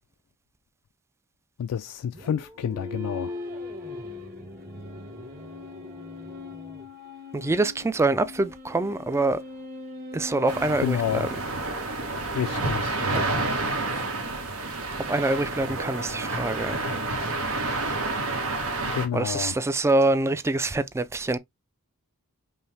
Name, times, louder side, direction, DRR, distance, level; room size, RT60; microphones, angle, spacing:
voice 1, 1.6-3.3 10.8-11.3 12.3-13.0 18.8-19.5, left 8 dB, 75° left, 0.3 m, -29 dB
sound 1, 2.1-6.9, right 1 dB, 25° right, 1.2 m, -45 dB
sound 2, 2.6-12.2, left 3 dB, 40° right, 1.5 m, -41 dB
voice 2, 7.3-9.4 10.1-11.3 15.1-16.8 19.1-21.4, right 2 dB, 10° right, 0.3 m, -25 dB
sound 3, 10.5-19.1, right 2 dB, 75° right, 1.1 m, -29 dB
5.4 x 2.0 x 3.2 m
head